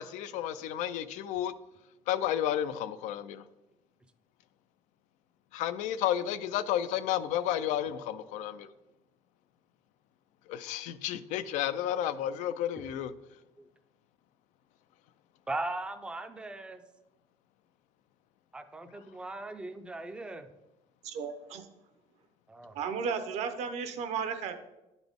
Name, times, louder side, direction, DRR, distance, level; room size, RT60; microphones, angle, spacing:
voice 1, 0.0-1.5 2.1-3.5 5.5-8.7 10.5-13.1, left 11 dB, 75° left, 0.4 m, -32 dB
voice 2, 15.5-16.8 18.5-20.5 22.5-22.8, right 2 dB, 10° right, 0.4 m, -39 dB
voice 3, 21.0-21.7 22.7-24.5, right 6 dB, 60° right, 0.7 m, -34 dB
10.5 x 4.0 x 3.5 m
cardioid pair, 155°, 13 cm